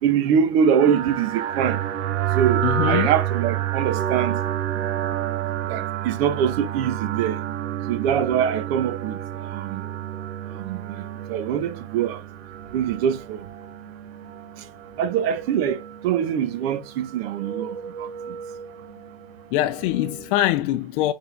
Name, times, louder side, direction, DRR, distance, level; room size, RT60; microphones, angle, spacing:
voice 1, 0.0-1.8 2.3-4.4 5.7-7.4 7.9-9.8 10.4-12.2 12.7-13.5 14.6-14.7 15.0-18.4, right 8 dB, 65° right, 1.2 m, -24 dB
sound 1, 0.7-20.4, right 11 dB, 85° right, 1.2 m, -30 dB
voice 2, 2.6-3.1 19.5-21.1, left 14 dB, 50° left, 0.6 m, -23 dB
7.0 x 4.1 x 3.5 m
supercardioid pair, 160°, 33 cm